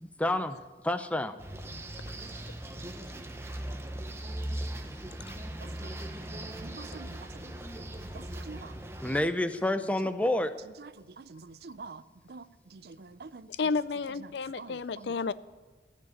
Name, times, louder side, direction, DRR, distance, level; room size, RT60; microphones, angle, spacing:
voice 1, 0.0-0.6 0.8-1.4 9.0-10.5, left 1 dB, 5° left, 10 dB, 0.6 m, -28 dB
sound 1, 1.4-9.2, right 1 dB, 15° right, 1.0 m, -39 dB
voice 2, 5.6-6.0 6.6-7.6 8.1-8.8 10.8-13.7 14.1-15.3, right 4 dB, 60° right, 15 dB, 0.5 m, -48 dB
voice 3, 13.6-15.3, left 4 dB, 75° left, 17 dB, 0.5 m, -31 dB
15.0 x 7.4 x 9.5 m, 1.3 s
head